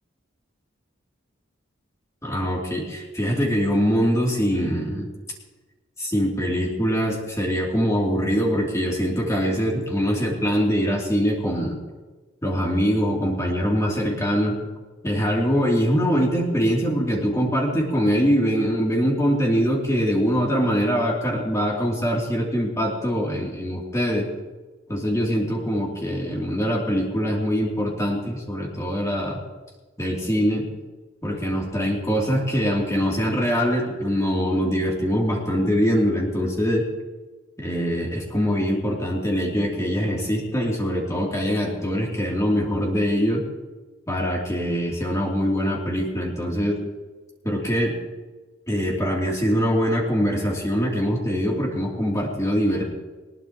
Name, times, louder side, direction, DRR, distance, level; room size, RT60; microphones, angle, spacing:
voice 1, 2.2-5.1 6.0-11.8 12.4-14.6 15.0-24.3 24.9-29.4 30.0-30.6 31.2-36.8 37.6-43.4 44.1-46.8 47.4-47.9 48.7-52.8, equal, 15° left, -3 dB, 2.9 m, -23 dB
20.5 x 19.5 x 3.0 m, 1.3 s
head